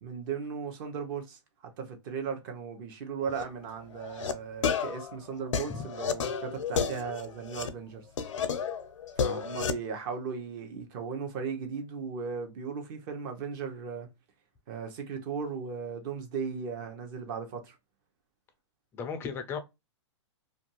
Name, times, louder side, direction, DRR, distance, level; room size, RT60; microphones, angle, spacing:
voice 1, 0.0-8.0 9.2-14.1 14.7-17.8, right 6 dB, 45° right, 0.8 m, -37 dB
sound 1, 3.3-3.4 4.0-4.3 4.6-7.7 8.2-9.8, left 6 dB, 85° left, 0.5 m, -32 dB
voice 2, 9.2-9.5 18.9-19.6, left 5 dB, 15° left, 0.3 m, -36 dB
2.5 x 2.3 x 2.8 m
hypercardioid pair, 140°, 16 cm